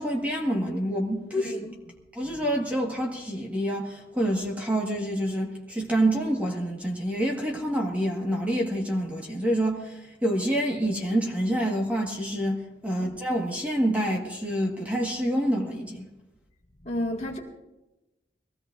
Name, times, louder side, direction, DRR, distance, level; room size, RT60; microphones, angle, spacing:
voice 1, 0.0-1.6 2.1-16.1, right 1 dB, 10° right, 1.7 m, -27 dB
voice 2, 1.4-1.8 12.9-13.1 16.8-17.4, left 1 dB, 35° left, 2.0 m, -32 dB
22.0 x 16.5 x 2.6 m
head